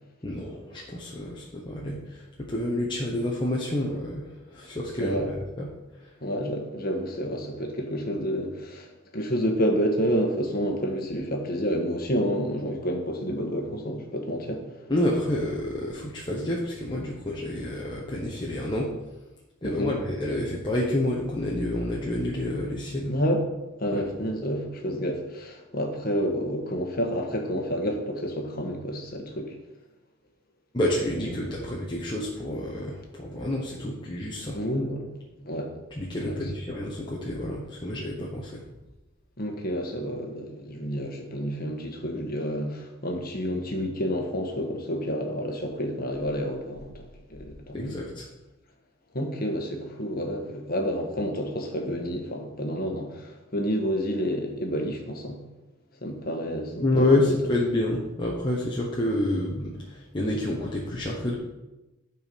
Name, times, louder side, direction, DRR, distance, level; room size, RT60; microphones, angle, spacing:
voice 1, 0.2-5.7 14.9-18.9 19.6-23.1 23.9-24.0 30.7-34.6 36.0-38.6 47.7-48.2 56.8-61.3, left 1 dB, 25° left, -4 dB, 1.1 m, -28 dB
voice 2, 5.0-5.3 6.2-14.7 19.6-19.9 23.1-23.4 23.8-29.5 31.1-31.5 34.5-35.1 35.4-35.7 36.2-36.5 39.4-48.1 49.1-55.4 56.0-57.1, equal, 45° left, 2 dB, 1.4 m, -29 dB
11.5 x 4.7 x 5.3 m, 1.0 s
head